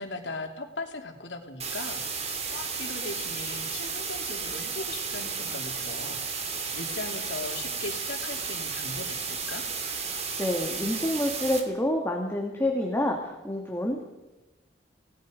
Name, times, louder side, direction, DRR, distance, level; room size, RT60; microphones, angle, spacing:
voice 1, 0.0-6.2 6.7-9.6, left 2 dB, 75° left, 3 dB, 3.1 m, -39 dB
sound 1, 1.6-11.6, right 5 dB, 35° right, 3.1 m, -33 dB
voice 2, 10.4-14.0, left 1 dB, 15° left, 1 dB, 2.2 m, -28 dB
29.5 x 18.5 x 5.3 m, 1.1 s
head